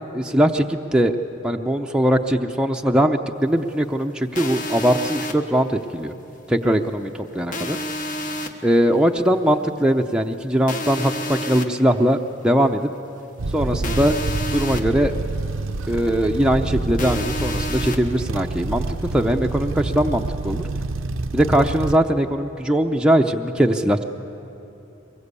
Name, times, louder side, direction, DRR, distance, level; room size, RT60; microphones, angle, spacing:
voice 1, 0.1-1.2 1.4-6.1 6.5-7.8 8.6-12.2 12.4-12.9 13.5-14.2 14.5-15.1 15.9-20.6 21.3-24.0, equal, 5° right, 2 dB, 0.6 m, -20 dB
sound 1, 4.4-5.3 7.5-8.5 10.7-11.7 13.8-14.8 17.0-18.0, left 1 dB, 40° left, 1.2 m, -29 dB
sound 2, 13.4-22.0, right 2 dB, 85° right, 0.7 m, -27 dB
23.0 x 21.0 x 8.3 m, 2.9 s
head